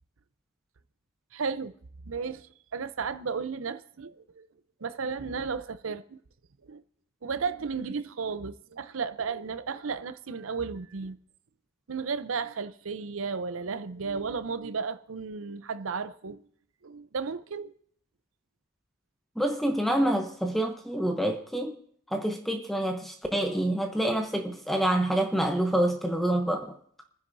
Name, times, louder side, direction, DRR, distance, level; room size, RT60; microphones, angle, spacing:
voice 1, 1.3-1.7 2.1-2.5 2.7-4.5 4.8-6.2 6.7-6.8 7.2-11.2 11.9-16.4 16.8-17.7, right 5 dB, 80° right, 0.6 m, -34 dB
voice 2, 19.4-21.7 22.1-26.8, right 1 dB, ahead, 0.8 m, -27 dB
30.0 x 10.0 x 2.7 m
head